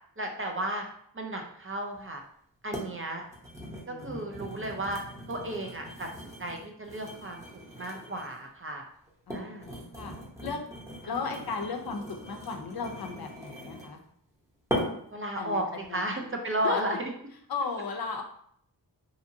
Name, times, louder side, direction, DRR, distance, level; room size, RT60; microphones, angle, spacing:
voice 1, 0.2-0.8 1.1-2.2 2.6-3.2 3.9-5.0 5.3-7.4 7.8-8.8 9.3-9.7 15.1-17.1, right 1 dB, 30° right, 2 dB, 0.5 m, -33 dB
sound 1, 1.9-2.0 2.7-2.9 3.3-8.5 9.1-14.0 14.7-15.1 15.7-15.9, equal, 5° right, 0.8 m, -39 dB
voice 2, 3.9-4.4 9.3-10.1 10.4-10.6 11.1-14.0 15.4-15.6 15.9-16.3 16.6-17.0 17.5-18.2, left 5 dB, 60° left, 4 dB, 0.5 m, -35 dB
2.8 x 2.5 x 2.6 m, 0.66 s
wide cardioid pair, 55°, 43 cm